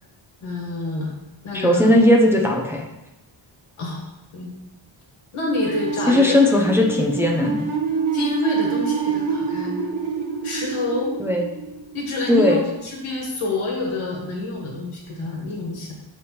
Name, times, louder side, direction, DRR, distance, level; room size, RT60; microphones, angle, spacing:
voice 1, 0.4-1.2 1.4-2.0 3.8-4.1 4.3-4.5 5.3-6.3 8.1-9.8 10.4-11.1 11.9-15.9, left 2 dB, 90° left, -1 dB, 1.8 m, -27 dB
voice 2, 1.6-2.8 6.1-7.6 11.2-11.4 12.3-12.6, left 1 dB, 5° right, -1 dB, 0.6 m, -17 dB
sound 1, 5.6-12.4, right 6 dB, 60° right, 1.1 m, -27 dB
7.1 x 3.4 x 4.3 m, 0.95 s
wide cardioid pair, 175°, 49 cm